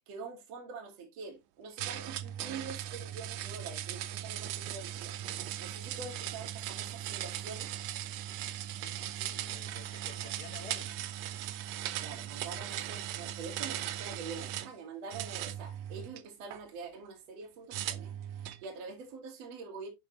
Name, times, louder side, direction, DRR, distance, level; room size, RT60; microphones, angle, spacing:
voice 1, 0.1-5.1 5.6-7.7 12.0-18.1 18.4-19.9, right 4 dB, 55° right, 2.7 m, -45 dB
sound 1, 1.8-14.7 15.1-16.6 17.7-18.7, right 12 dB, 80° right, 1.6 m, -38 dB
voice 2, 8.8-10.9, left 7 dB, 80° left, 2.8 m, -51 dB
10.5 x 3.6 x 3.1 m
omnidirectional pair, 3.8 m